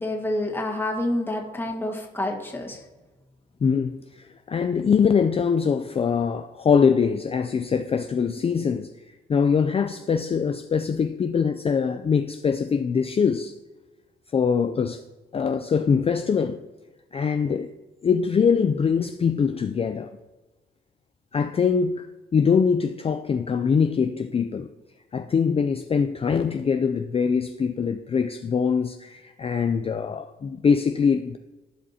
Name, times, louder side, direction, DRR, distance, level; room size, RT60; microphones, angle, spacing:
voice 1, 0.0-2.8, left 1 dB, 10° left, 1.7 m, -28 dB
voice 2, 3.6-8.9 9.3-13.5 14.3-15.0 15.3-16.6 17.1-17.7 18.0-20.1 21.3-24.7 25.1-31.4, left 6 dB, 30° left, 0.4 m, -23 dB
14.5 x 5.1 x 2.9 m
cardioid pair, 90°, 20 cm